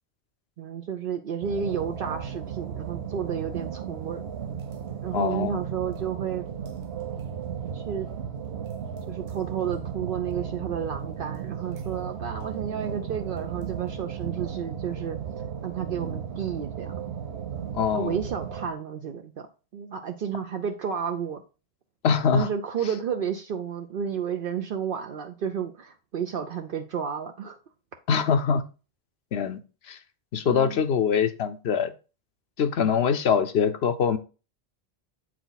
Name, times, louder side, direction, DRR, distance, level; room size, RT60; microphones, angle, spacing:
voice 1, 0.6-4.2 5.0-6.5 7.7-8.1 9.1-15.2 15.6-16.9 17.9-19.5 19.7-21.4 22.3-27.6 30.4-30.8, right 7 dB, 65° right, 0.8 m, -31 dB
sound 1, 1.4-18.7, right 7 dB, 80° right, 1.1 m, -35 dB
voice 2, 5.1-5.6 17.7-18.2 22.0-22.5 28.1-28.6 29.3-29.6 29.9-30.0 30.3-31.9 32.6-34.2, left 6 dB, 85° left, 1.0 m, -23 dB
7.9 x 4.7 x 4.0 m
omnidirectional pair, 1.0 m